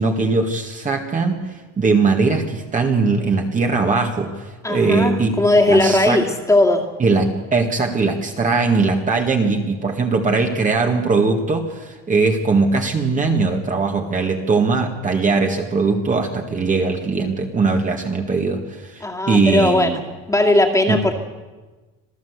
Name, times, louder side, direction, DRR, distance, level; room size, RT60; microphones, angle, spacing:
voice 1, 0.0-1.4 1.8-5.3 5.7-6.3 7.0-20.0 20.9-21.1, right 4 dB, 25° right, 3 dB, 1.8 m, -20 dB
voice 2, 4.6-6.9 19.0-20.0 20.3-21.1, left 2 dB, 10° left, 2 dB, 2.3 m, -17 dB
26.5 x 16.5 x 8.0 m, 1.2 s
cardioid pair, 160°, 32 cm